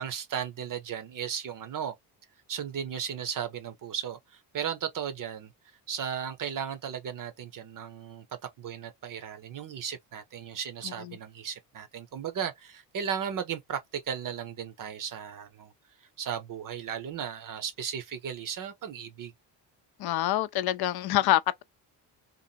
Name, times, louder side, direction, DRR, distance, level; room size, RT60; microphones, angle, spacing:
voice 1, 0.0-1.9 2.5-5.5 5.9-15.7 16.2-19.3, right 8 dB, 45° right, 0.7 m, -35 dB
voice 2, 10.8-11.2 20.0-21.6, left 14 dB, 55° left, 0.5 m, -26 dB
2.7 x 2.5 x 2.7 m
cardioid pair, 85°, 44 cm